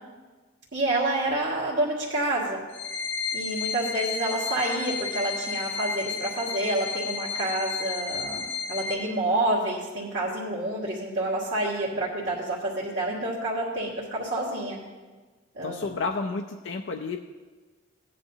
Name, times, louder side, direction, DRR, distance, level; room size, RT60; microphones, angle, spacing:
voice 1, 0.7-2.6 3.3-14.8 15.5-15.9, right 1 dB, 60° right, -8 dB, 1.9 m, -28 dB
sound 1, 2.7-8.9, left 5 dB, 85° left, 1.2 m, -32 dB
voice 2, 15.6-17.2, left 4 dB, 65° left, 3 dB, 0.5 m, -31 dB
15.5 x 9.8 x 2.8 m, 1.4 s
head